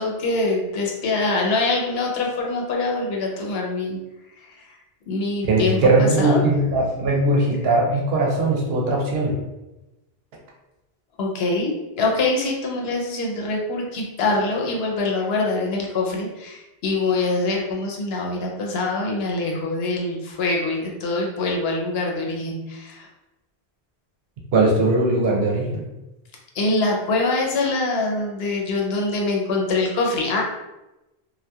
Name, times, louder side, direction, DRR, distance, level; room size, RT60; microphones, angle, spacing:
voice 1, 0.0-4.0 4.6-4.7 5.1-6.4 11.2-23.1 26.5-30.4, left 3 dB, 80° left, 0 dB, 0.8 m, -24 dB
voice 2, 5.4-9.4 24.5-25.8, right 2 dB, 75° right, -1 dB, 0.8 m, -19 dB
2.8 x 2.1 x 2.2 m, 1.0 s
omnidirectional pair, 1.0 m